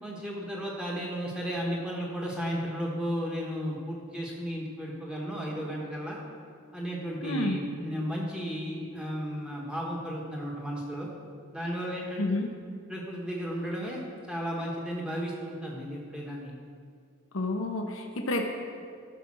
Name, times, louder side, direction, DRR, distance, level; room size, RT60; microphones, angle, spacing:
voice 1, 0.0-6.2 6.7-11.1 11.5-12.4 12.9-14.0 14.3-16.5, equal, 5° right, -3 dB, 1.3 m, -34 dB
voice 2, 7.2-7.6 12.2-12.5 17.3-18.4, left 2 dB, 70° left, 3 dB, 0.9 m, -29 dB
13.0 x 5.1 x 6.2 m, 2.2 s
head